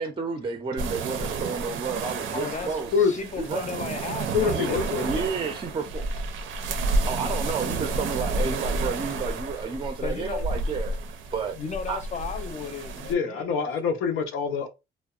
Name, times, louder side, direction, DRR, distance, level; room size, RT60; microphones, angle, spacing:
voice 1, 0.0-2.9 3.4-3.7 4.5-4.7 5.0-6.1 7.1-11.0 11.3-11.6 11.9-12.0, right 5 dB, 25° right, 0.4 m, -31 dB
sound 1, 0.8-13.1, right 3 dB, 80° right, 0.5 m, -30 dB
voice 2, 2.3-2.8 3.1-5.1 10.0-10.5 11.6-13.4, left 5 dB, 35° left, 0.6 m, -35 dB
voice 3, 4.3-5.0 13.1-14.7, left 6 dB, 85° left, 0.6 m, -25 dB
2.7 x 2.1 x 2.3 m
cardioid pair, 90°, 20 cm